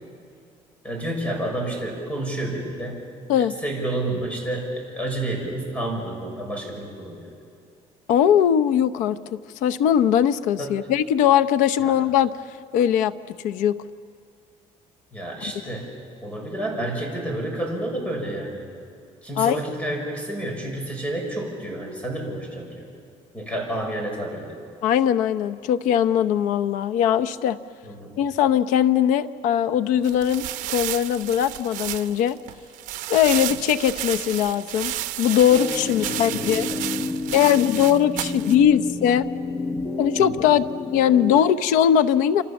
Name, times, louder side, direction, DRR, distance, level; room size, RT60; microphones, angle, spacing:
voice 1, 0.8-3.0 3.4-7.2 10.6-10.8 11.8-11.9 15.1-15.9 16.2-18.7 19.2-22.9 23.3-24.6 27.8-28.2 35.8-36.8 40.2-40.5, right 1 dB, 10° left, 1 dB, 6.2 m, -30 dB
voice 2, 8.1-12.3 12.7-13.8 19.4-19.6 24.8-27.6 28.2-32.4 33.1-36.7 37.3-39.3 40.0-42.4, left 9 dB, 90° left, 11 dB, 0.9 m, -20 dB
sound 1, 30.0-38.6, right 15 dB, 80° right, 0.8 m, -32 dB
sound 2, 35.5-41.4, left 3 dB, 25° left, 1.2 m, -30 dB
28.0 x 27.0 x 7.2 m, 2.4 s
cardioid pair, 155°, 13 cm